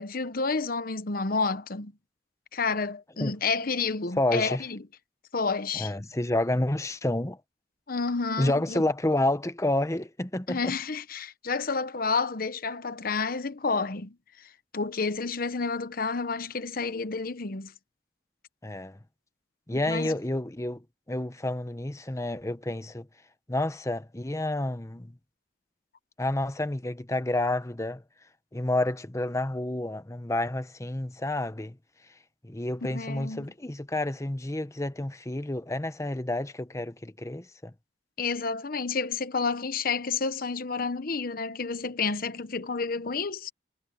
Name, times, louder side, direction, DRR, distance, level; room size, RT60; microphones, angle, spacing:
voice 1, 0.0-1.9 2.5-4.8 5.3-5.9 7.9-8.8 10.5-17.7 19.7-20.2 32.9-33.5 38.2-43.5, left 4 dB, 55° left, 1.0 m, -30 dB
voice 2, 4.2-4.6 5.7-7.4 8.4-10.8 18.6-19.0 19.7-23.1 23.5-25.2 26.2-28.0 28.5-31.8 32.4-37.7, left 1 dB, 15° left, 1.0 m, -29 dB
head